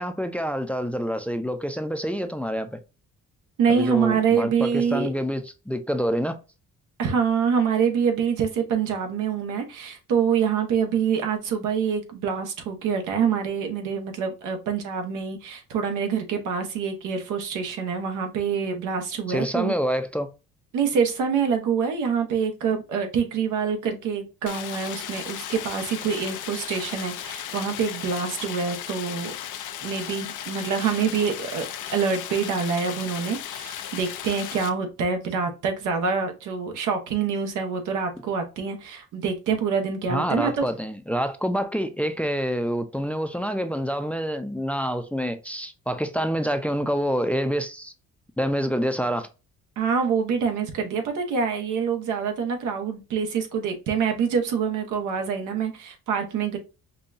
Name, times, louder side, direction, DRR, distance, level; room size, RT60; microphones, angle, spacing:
voice 1, 0.0-2.8 3.7-6.4 19.3-20.3 40.1-47.9 48.4-49.3, equal, 5° left, 0.4 m, -27 dB
voice 2, 3.6-5.1 7.0-19.7 20.7-29.3 29.8-40.6 49.8-56.6, right 6 dB, 85° right, 1.1 m, -26 dB
Stream, 24.5-34.7, left 11 dB, 85° left, 0.6 m, -36 dB
5.4 x 2.2 x 2.6 m
cardioid pair, 90°, 30 cm